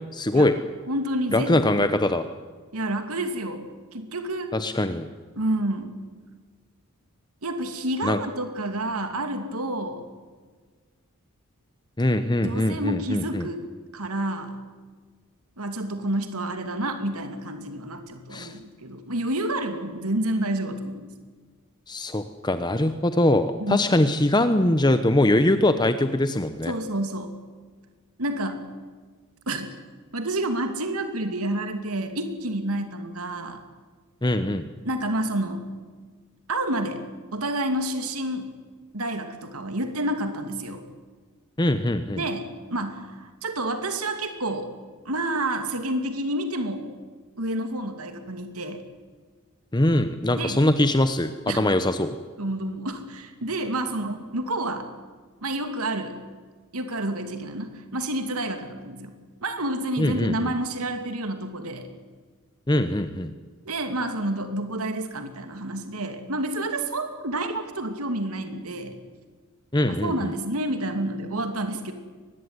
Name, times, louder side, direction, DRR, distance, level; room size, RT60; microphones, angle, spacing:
voice 1, 0.1-0.5 1.3-2.2 4.5-5.1 8.0-8.2 12.0-13.5 18.3-18.5 21.9-26.7 34.2-34.6 41.6-42.2 49.7-51.3 51.5-52.2 60.0-60.5 62.7-63.3 69.7-70.3, left 1 dB, 20° left, 10 dB, 0.9 m, -22 dB
voice 2, 0.9-2.0 2.7-3.6 3.9-4.5 5.3-6.0 7.4-10.0 12.4-14.6 15.6-21.1 23.6-23.8 26.7-27.3 28.2-28.6 29.5-29.7 30.1-33.6 34.8-35.7 36.5-37.0 37.3-38.5 38.9-40.8 42.2-44.7 45.0-46.9 47.4-48.8 50.3-50.6 51.5-51.7 52.4-54.9 55.4-56.1 56.7-59.2 59.4-61.9 63.7-69.0 70.0-71.9, right 1 dB, 80° right, 7 dB, 2.6 m, -29 dB
23.5 x 20.0 x 9.7 m, 1.5 s
head